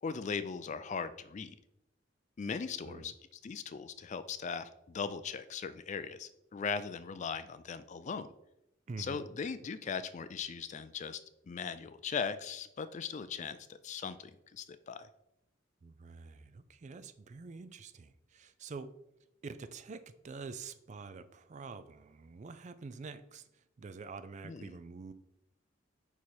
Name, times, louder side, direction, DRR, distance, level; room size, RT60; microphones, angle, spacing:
voice 1, 0.0-1.5 2.4-3.1 3.4-8.3 9.0-11.2 11.5-15.1 24.4-24.7, left 5 dB, 40° left, 13 dB, 0.4 m, -39 dB
voice 2, 8.9-9.2 15.8-18.9 19.4-25.1, right 4 dB, 40° right, 12 dB, 0.4 m, -47 dB
5.3 x 4.7 x 4.3 m, 0.82 s
head